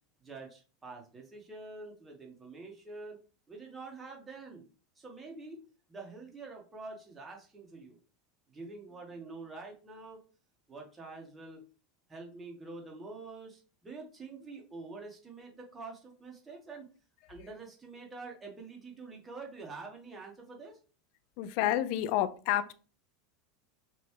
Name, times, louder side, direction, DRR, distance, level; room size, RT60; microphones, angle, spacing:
voice 1, 0.2-3.2 3.5-4.7 5.0-5.6 5.9-8.0 8.5-10.2 10.7-11.6 12.1-16.9 17.3-20.8, right 3 dB, 15° right, 1.5 m, -46 dB
voice 2, 21.4-22.7, left 12 dB, 55° left, 0.4 m, -29 dB
5.9 x 2.3 x 3.1 m
figure-of-eight pair, 85°, 0 cm